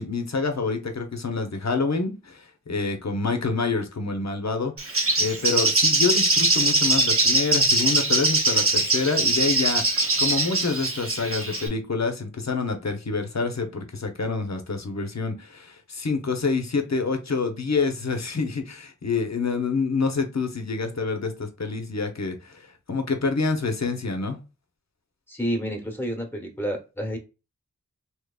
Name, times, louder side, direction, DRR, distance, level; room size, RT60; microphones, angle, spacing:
voice 1, 0.0-24.4, left 4 dB, 60° left, 0.8 m, -27 dB
Bird, 4.8-11.7, right 2 dB, 45° right, 0.8 m, -22 dB
voice 2, 25.3-27.2, equal, 5° left, 1.1 m, -29 dB
3.5 x 2.9 x 2.3 m
wide cardioid pair, 50°, 31 cm